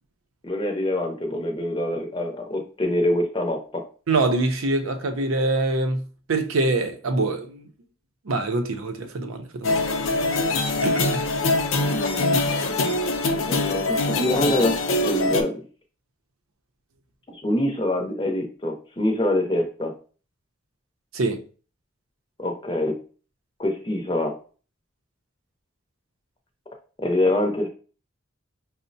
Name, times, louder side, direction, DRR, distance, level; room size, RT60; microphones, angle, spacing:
voice 1, 0.4-3.9 11.8-12.5 13.3-15.6 17.3-19.9 22.4-23.0 23.6-24.4 27.0-27.7, left 1 dB, 25° left, 0.6 m, -25 dB
voice 2, 4.1-6.0 6.3-7.7 8.2-9.8 10.3-10.5 10.8-11.2 21.1-21.4, right 2 dB, 90° right, 0.6 m, -24 dB
sound 1, 9.6-15.4, left 2 dB, 80° left, 0.5 m, -23 dB
5.4 x 2.0 x 2.6 m
head